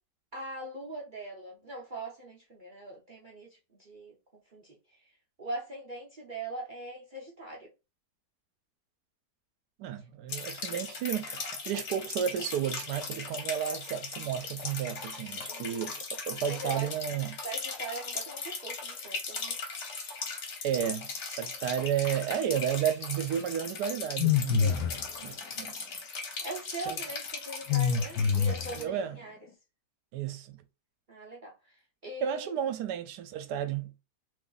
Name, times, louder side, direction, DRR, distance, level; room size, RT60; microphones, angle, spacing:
voice 1, 0.3-5.0 5.4-7.7 15.5-15.8 16.4-16.9 17.4-19.6 22.1-22.2 26.4-29.4 31.1-31.7 32.0-32.5, right 2 dB, 50° right, 0.6 m, -41 dB
voice 2, 9.8-17.4 20.6-24.9 25.2-25.7 26.9-27.0 28.8-29.2 30.1-30.6 32.2-33.9, right 9 dB, 80° right, 1.2 m, -32 dB
sound 1, 10.3-28.8, left 4 dB, 55° left, 0.9 m, -39 dB
sound 2, 24.2-25.1 27.7-28.9, left 7 dB, 80° left, 1.2 m, -26 dB
3.0 x 2.5 x 3.8 m
omnidirectional pair, 1.8 m